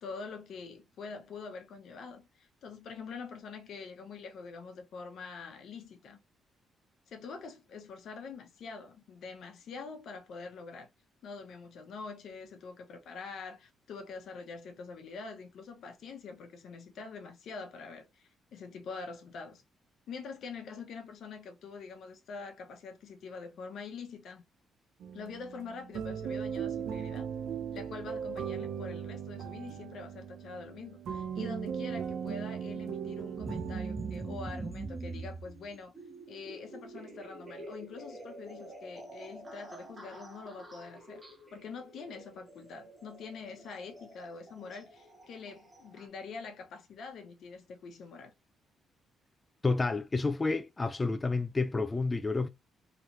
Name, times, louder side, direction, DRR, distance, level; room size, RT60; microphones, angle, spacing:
voice 1, 0.0-6.2 7.1-10.9 11.2-19.6 20.1-24.4 25.1-27.3 27.7-35.9 36.3-41.2 41.5-48.3, left 4 dB, 70° left, 0.9 m, -45 dB
sound 1, 25.0-34.4, right 7 dB, 75° right, 0.7 m, -38 dB
sound 2, 33.4-46.0, right 3 dB, 20° right, 1.1 m, -44 dB
voice 2, 49.6-52.5, left 3 dB, 25° left, 0.3 m, -30 dB
3.1 x 3.0 x 2.6 m
cardioid pair, 90°, 0 cm